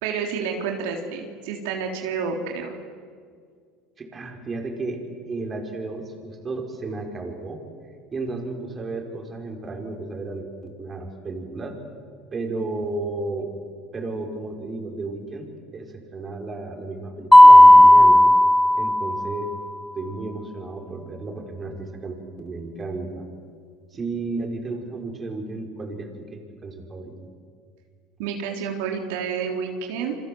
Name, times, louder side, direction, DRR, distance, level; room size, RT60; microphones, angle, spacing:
voice 1, 0.0-2.8 28.2-30.2, right 6 dB, 80° right, 2 dB, 3.7 m, -29 dB
voice 2, 4.0-7.6 8.1-11.8 12.3-13.5 13.9-18.2 18.7-19.5 20.0-23.3 23.9-27.1, right 3 dB, 25° right, 2 dB, 5.3 m, -33 dB
Mallet percussion, 17.3-19.4, left 1 dB, 5° left, 0.8 m, -11 dB
28.5 x 24.5 x 8.0 m, 2.1 s
supercardioid pair, 110°, 0 cm